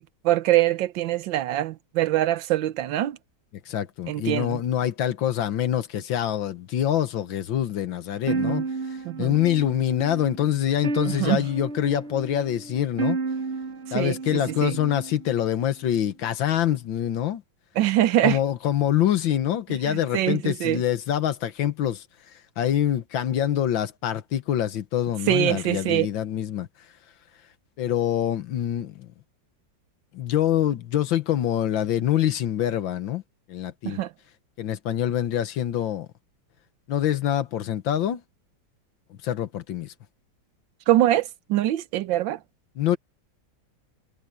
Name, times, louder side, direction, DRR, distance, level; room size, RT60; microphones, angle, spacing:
voice 1, 0.0-3.2 4.1-4.6 8.3-8.6 9.0-9.3 11.1-11.4 13.9-14.8 17.8-18.4 19.7-20.8 25.3-26.1 33.8-34.1 40.9-42.4, right 14 dB, 75° right, 1.5 m, -24 dB
voice 2, 3.7-8.6 9.2-13.2 13.9-17.4 18.2-22.0 22.6-26.7 27.8-29.1 30.1-33.2 33.5-34.0 34.6-36.1 36.9-38.2 39.1-39.9 42.8-43.0, left 11 dB, 80° left, 1.8 m, -25 dB
sound 1, 8.3-15.4, right 4 dB, 50° right, 0.9 m, -32 dB
omnidirectional pair, 2.1 m